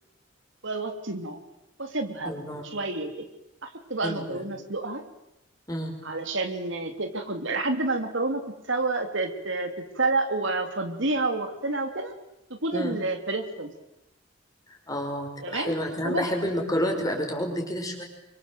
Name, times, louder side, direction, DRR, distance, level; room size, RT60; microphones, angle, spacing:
voice 1, 0.6-1.4 1.8-3.3 3.6-5.0 6.0-8.4 8.7-12.1 12.5-13.7 15.4-15.8 16.0-16.3, right 2 dB, 60° right, 6 dB, 2.8 m, -29 dB
voice 2, 2.3-2.6 4.0-4.4 5.7-5.9 12.7-13.0 14.9-18.1, equal, 15° left, 2 dB, 5.5 m, -29 dB
28.0 x 24.5 x 7.7 m, 0.90 s
head